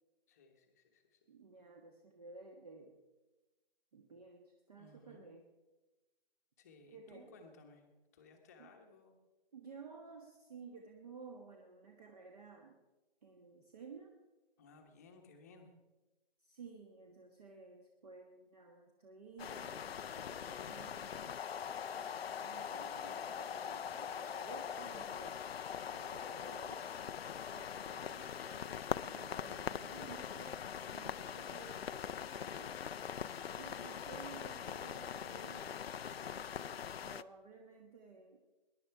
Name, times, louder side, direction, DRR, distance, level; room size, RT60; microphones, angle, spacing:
voice 1, 0.3-1.3 4.8-5.3 6.6-7.9 8.1-9.2 14.6-15.7, left 3 dB, 15° left, 3 dB, 1.1 m, -60 dB
voice 2, 1.3-3.0 3.9-5.5 6.9-7.3 8.6-8.7 9.5-12.8 13.2-14.2 16.4-21.4 21.9-25.5 25.9-26.9 27.5-32.8 33.6-36.2 36.6-38.4, right 4 dB, 40° right, 2 dB, 1.4 m, -54 dB
sound 1, 19.4-37.2, left 8 dB, 80° left, 0.6 m, -42 dB
21.0 x 10.5 x 4.6 m, 1.1 s
hypercardioid pair, 170°, 30 cm